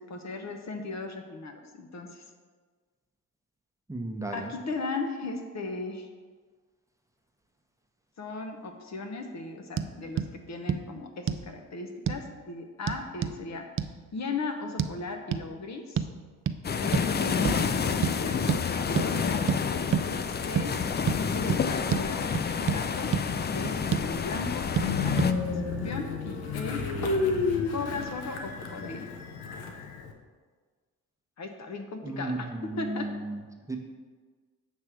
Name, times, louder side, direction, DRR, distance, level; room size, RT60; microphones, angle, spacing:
voice 1, 0.0-2.2 4.3-6.1 8.2-13.6 14.1-16.1 16.7-19.4 20.3-20.7 21.1-22.3 22.6-23.1 23.5-26.8 27.7-29.1 31.4-33.1, left 3 dB, 45° left, 5 dB, 0.9 m, -37 dB
voice 2, 3.9-4.5 32.0-33.4 33.7-33.8, right 2 dB, 10° right, 2 dB, 0.9 m, -34 dB
sound 1, 9.8-9.9 10.2-10.3 10.7-10.8 11.3-11.5 12.1-12.2 12.9-13.4 13.8-13.9 14.8-14.9 15.3-15.5 16.0-16.1 16.5-16.6 16.9-17.1 17.4-17.6 18.0-18.2 18.5-18.6 19.0-19.1 19.5-19.6 19.9-20.1 20.5-20.7 21.1-21.2 21.5-21.6 21.9-22.0 22.3-22.8 23.1-23.2 23.6-24.1 24.8-24.9 25.2-25.3, right 8 dB, 35° right, 0.4 m, -28 dB
sound 2, 16.6-25.3, left 6 dB, 30° left, 0.4 m, -29 dB
Train, 24.8-30.1, left 4 dB, 85° left, 0.8 m, -31 dB
7.2 x 3.3 x 6.2 m, 1.5 s
supercardioid pair, 65°, 37 cm